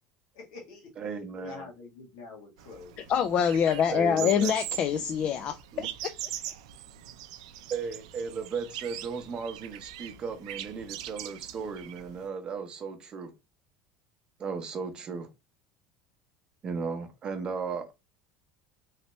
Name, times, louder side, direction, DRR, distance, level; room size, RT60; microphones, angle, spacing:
voice 1, 0.3-0.9 1.3-3.0, left 4 dB, 85° left, 1.5 m, -46 dB
voice 2, 1.0-1.7 3.9-4.5 5.7-5.9 7.7-13.3 14.4-15.3 16.6-17.9, right 5 dB, 30° right, 0.8 m, -35 dB
sound 1, 2.6-12.3, right 12 dB, 90° right, 0.4 m, -41 dB
voice 3, 3.0-5.9, left 8 dB, 40° left, 0.3 m, -25 dB
3.2 x 2.8 x 2.9 m
cardioid pair, 140°, 3 cm